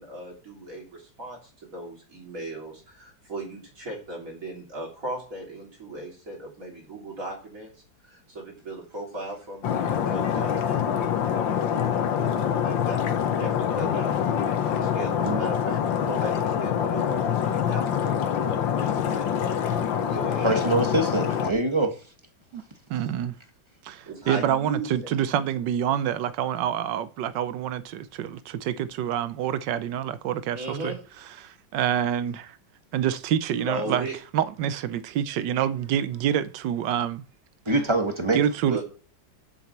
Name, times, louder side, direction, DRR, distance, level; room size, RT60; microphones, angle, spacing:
voice 1, 0.0-7.7 8.0-13.1 13.4-20.6 23.0-23.1 24.1-25.1 30.5-31.0 33.5-34.1 38.7-38.8, right 1 dB, 45° right, 3.6 m, -37 dB
Stream, 9.6-21.5, left 8 dB, 85° left, 1.8 m, -25 dB
voice 2, 20.4-22.0 37.7-38.4, right 2 dB, 20° right, 0.9 m, -24 dB
voice 3, 22.9-23.3 23.8-31.0 31.4-32.6 32.9-34.1 34.3-37.2 38.3-38.8, right 10 dB, 75° right, 1.4 m, -27 dB
7.4 x 6.8 x 7.3 m
omnidirectional pair, 2.0 m